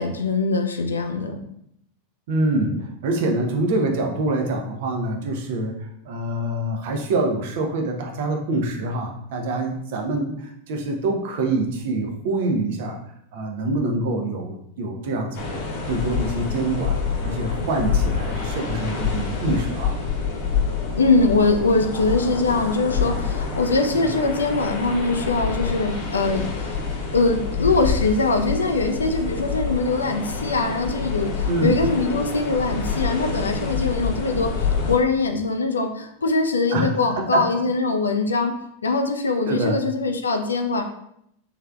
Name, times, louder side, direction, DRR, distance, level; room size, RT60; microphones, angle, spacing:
voice 1, 0.0-1.4 21.0-26.8 27.1-38.5 38.8-40.8, left 3 dB, 75° left, 6 dB, 0.3 m, -22 dB
voice 2, 2.3-13.0 13.3-20.0 23.9-24.1 31.4-31.8 36.7-37.6 39.5-39.8, right 2 dB, 50° right, 2 dB, 0.6 m, -25 dB
sound 1, 15.3-35.0, left 5 dB, 50° left, 0.8 m, -27 dB
3.5 x 3.3 x 2.3 m, 0.75 s
figure-of-eight pair, 90°, 0 cm